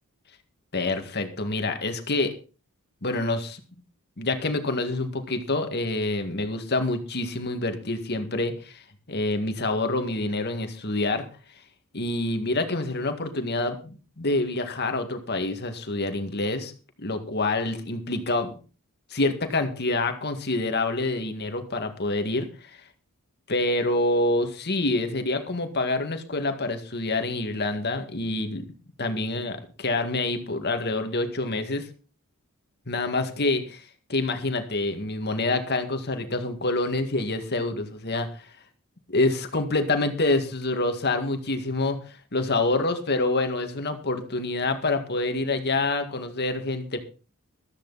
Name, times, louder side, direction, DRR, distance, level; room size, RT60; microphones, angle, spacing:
voice 1, 0.7-2.3 3.0-3.6 4.2-8.8 9.1-11.2 11.9-16.7 17.0-18.5 19.1-22.7 23.5-28.7 29.0-31.9 32.9-33.8 34.1-38.3 39.1-47.0, left 2 dB, 45° left, 7 dB, 2.0 m, -27 dB
14.5 x 13.5 x 4.1 m, 0.36 s
head